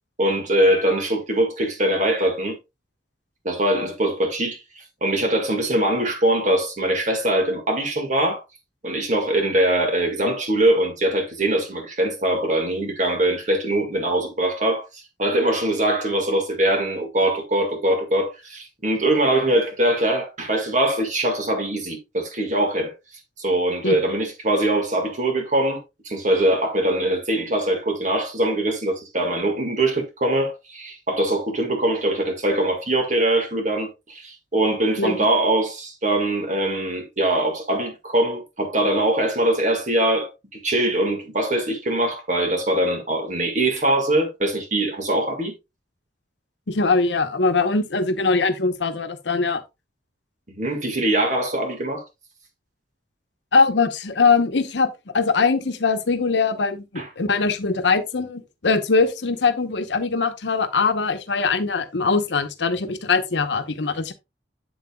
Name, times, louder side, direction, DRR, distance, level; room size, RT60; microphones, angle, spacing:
voice 1, 0.2-2.6 3.4-8.4 8.8-14.9 15.2-22.9 23.4-45.5 50.6-52.0 57.0-57.1, right 1 dB, 45° right, 1.9 m, -22 dB
voice 2, 46.7-49.6 53.5-64.1, left 4 dB, 75° left, 0.9 m, -21 dB
7.9 x 7.8 x 2.3 m
head